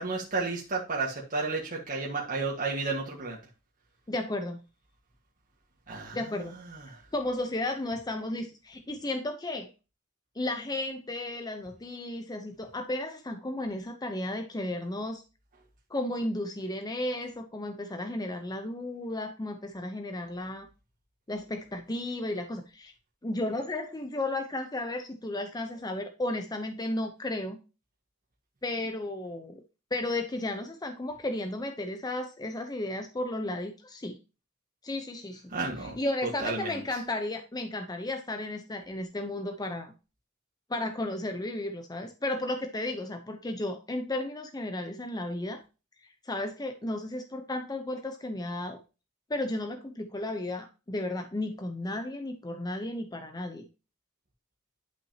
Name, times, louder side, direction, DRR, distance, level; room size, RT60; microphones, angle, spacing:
voice 1, 0.0-3.4 5.9-6.2 6.7-7.0 35.5-36.8, right 3 dB, 40° right, 1.6 m, -32 dB
voice 2, 4.1-4.6 6.1-6.6 7.1-9.7 10.3-15.2 15.9-20.7 21.3-22.9 23.2-27.6 28.6-29.6 29.9-34.2 34.8-35.4 35.8-39.9 40.7-45.6 46.2-48.8 49.3-53.7, left 1 dB, 20° left, 0.7 m, -34 dB
11.0 x 6.1 x 2.8 m
head